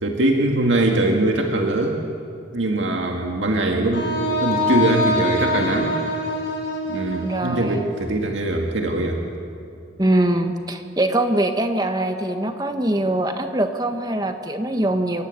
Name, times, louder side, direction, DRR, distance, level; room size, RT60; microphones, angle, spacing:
voice 1, 0.0-2.0 2.5-4.1 4.4-6.0 6.9-9.2, right 2 dB, 80° right, 1 dB, 2.0 m, -21 dB
Wind instrument woodwind instrument, 3.9-8.0, left 1 dB, 70° left, 7.6 m, -25 dB
voice 2, 7.2-7.8 10.0-15.2, right 1 dB, 20° right, 6 dB, 1.3 m, -22 dB
27.5 x 15.5 x 9.5 m, 2.4 s
head